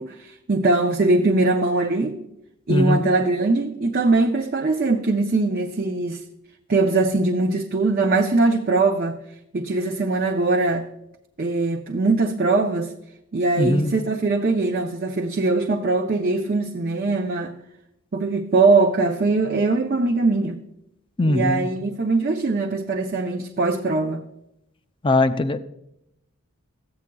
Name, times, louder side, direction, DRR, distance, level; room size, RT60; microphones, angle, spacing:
voice 1, 0.0-2.2 2.7-6.2 6.7-9.2 9.5-10.9 11.4-12.9 13.3-17.5 18.1-20.6 21.2-24.2, right 3 dB, 40° right, 0.5 m, -21 dB
voice 2, 2.7-3.1 13.6-13.9 21.2-21.7 25.0-25.6, left 2 dB, 20° left, 0.4 m, -20 dB
14.5 x 8.4 x 2.2 m
head